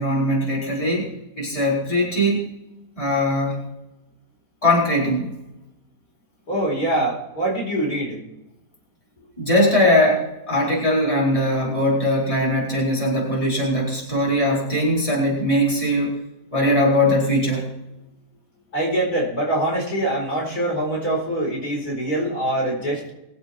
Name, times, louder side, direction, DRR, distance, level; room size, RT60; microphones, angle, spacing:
voice 1, 0.0-2.5 3.0-3.6 4.6-5.3 9.4-16.2 16.5-17.7, left 1 dB, 20° left, -5 dB, 4.7 m, -20 dB
voice 2, 6.5-8.2 18.7-23.1, right 1 dB, 55° left, -2 dB, 5.0 m, -24 dB
22.0 x 8.0 x 4.5 m, 0.92 s
omnidirectional pair, 1.9 m